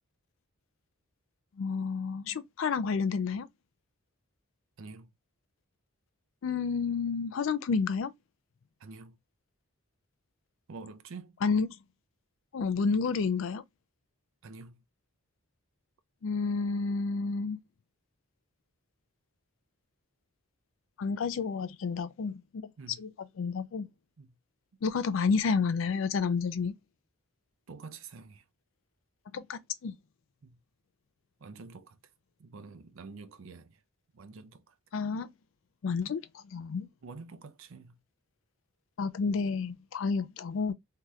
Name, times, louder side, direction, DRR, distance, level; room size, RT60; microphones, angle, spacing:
voice 1, 1.6-3.5 6.4-8.1 11.4-11.7 12.5-13.6 16.2-17.6 21.0-22.4 23.0-23.1 23.4-23.9 24.8-26.7 29.3-29.9 34.9-35.3 35.8-36.9 39.0-40.7, left 5 dB, 65° left, 0.4 m, -30 dB
voice 2, 4.8-5.1 8.8-9.2 10.7-11.3 14.4-14.8 22.8-23.0 24.2-24.3 27.7-28.4 30.4-30.6 31.4-32.0 32.4-33.8 34.1-34.7 37.0-38.0, right 4 dB, 65° right, 0.5 m, -47 dB
3.1 x 2.8 x 2.3 m
head